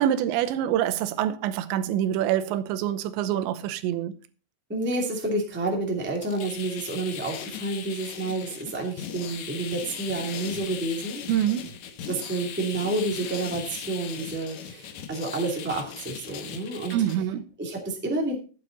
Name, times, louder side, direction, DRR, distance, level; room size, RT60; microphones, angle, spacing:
voice 1, 0.0-4.2 11.3-11.7 16.9-17.4, right 11 dB, 90° right, 3.1 m, -25 dB
voice 2, 4.7-11.2 12.1-16.9 17.6-18.3, right 2 dB, 5° right, 1.3 m, -29 dB
sound 1, 6.0-17.2, left 8 dB, 75° left, 1.7 m, -39 dB
12.0 x 9.1 x 4.0 m
omnidirectional pair, 5.1 m